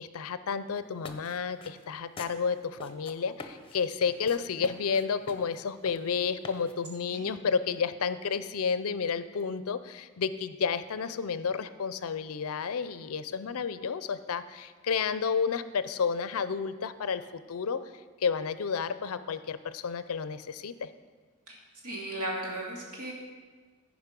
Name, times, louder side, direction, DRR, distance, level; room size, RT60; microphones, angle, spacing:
voice 1, 0.0-17.8 18.2-20.9, left 6 dB, 70° left, 13 dB, 0.5 m, -31 dB
sound 1, 0.8-7.0, left 3 dB, 25° left, 0.7 m, -47 dB
voice 2, 21.8-23.1, right 1 dB, 80° right, -3 dB, 2.7 m, -36 dB
14.5 x 5.1 x 5.2 m, 1.5 s
head